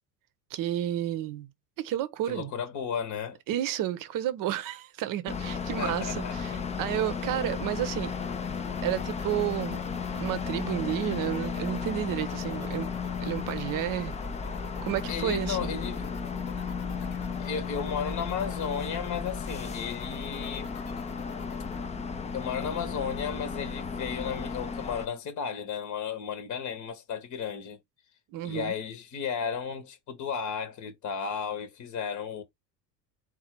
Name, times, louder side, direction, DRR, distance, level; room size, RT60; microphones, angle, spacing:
voice 1, 0.5-1.5 1.8-2.5 3.5-8.1 8.8-9.8 10.2-12.9 13.2-14.1 14.8-15.8 28.3-28.7, right 12 dB, 40° right, 0.8 m, -31 dB
voice 2, 2.3-3.4 5.8-6.6 15.1-16.0 17.4-20.7 22.3-27.8 28.4-32.4, left 7 dB, 35° left, 1.0 m, -34 dB
sound 1, 5.3-25.1, left 5 dB, 15° left, 0.4 m, -34 dB
sound 2, 8.1-21.8, left 11 dB, 60° left, 1.0 m, -50 dB
4.0 x 2.4 x 4.4 m
hypercardioid pair, 80°, 50 cm